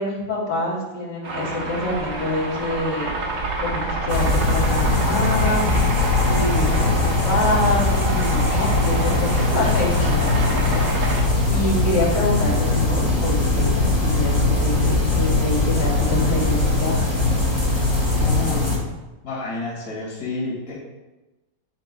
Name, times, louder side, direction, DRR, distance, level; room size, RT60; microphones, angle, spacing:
voice 1, 0.0-3.1 3.6-10.8 11.5-17.0, left 1 dB, 75° left, -6 dB, 3.7 m, -26 dB
sound 1, 1.2-11.2, right 2 dB, 65° right, 2.0 m, -27 dB
sound 2, 4.1-18.8, left 2 dB, 25° left, 2.5 m, -20 dB
voice 2, 18.2-18.7 19.2-20.7, left 2 dB, 50° left, -7 dB, 2.7 m, -30 dB
10.0 x 9.9 x 2.3 m, 1.1 s
omnidirectional pair, 2.1 m